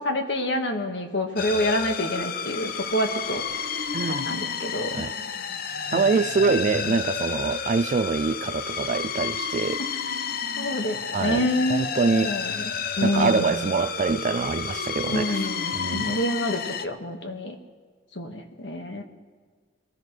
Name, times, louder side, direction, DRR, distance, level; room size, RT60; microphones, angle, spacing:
voice 1, 0.0-3.4 4.1-5.1 5.9-6.1 6.8-6.9 9.8-9.9 10.6-11.9 12.2-13.7 15.1-17.6 18.2-19.0, left 1 dB, 80° left, 1.7 m, -28 dB
sound 1, 1.4-16.9, left 6 dB, 55° left, 0.7 m, -31 dB
voice 2, 3.9-4.3 4.9-5.1 5.9-9.8 11.1-12.4 13.0-15.4 15.7-16.1, right 4 dB, 45° right, 0.4 m, -25 dB
23.5 x 15.5 x 3.3 m
head